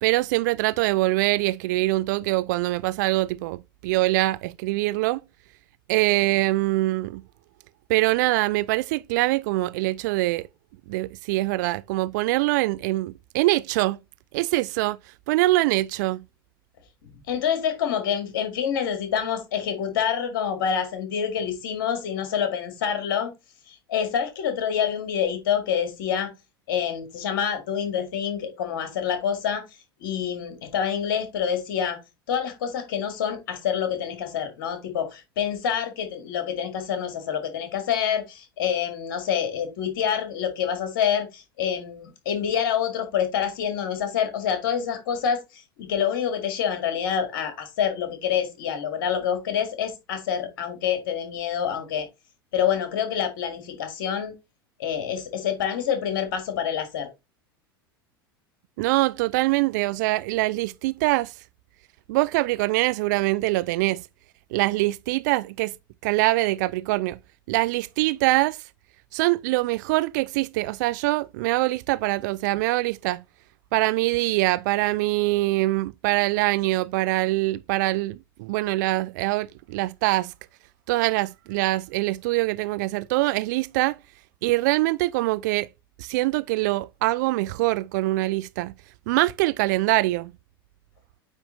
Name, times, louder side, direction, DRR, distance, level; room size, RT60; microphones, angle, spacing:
voice 1, 0.0-5.2 5.9-7.2 7.9-10.5 10.9-14.0 14.3-15.0 15.3-16.2 58.8-61.3 62.1-64.0 64.5-65.7 66.0-67.2 67.5-68.6 69.1-73.2 73.7-80.3 80.9-84.0 84.4-85.7 86.0-88.7 89.1-90.3, right 19 dB, 50° right, 0.4 m, -23 dB
voice 2, 17.0-23.3 23.7-26.3 26.7-29.6 30.0-32.0 32.3-52.1 52.5-54.3 54.8-57.1, left 8 dB, 60° left, 1.9 m, -27 dB
9.1 x 3.6 x 3.6 m
figure-of-eight pair, 80°, 12 cm